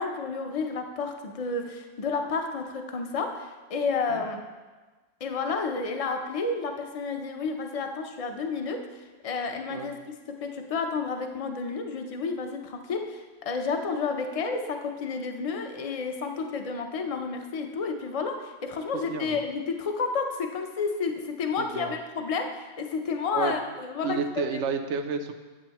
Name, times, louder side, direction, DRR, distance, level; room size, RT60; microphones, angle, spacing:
voice 1, 0.0-4.4 5.2-24.2 24.5-24.6, left 4 dB, 40° left, 5 dB, 0.6 m, -31 dB
voice 2, 21.6-22.0 23.3-23.6 24.0-25.3, right 5 dB, 75° right, 7 dB, 1.0 m, -31 dB
8.9 x 8.6 x 3.0 m, 1.3 s
omnidirectional pair, 1.3 m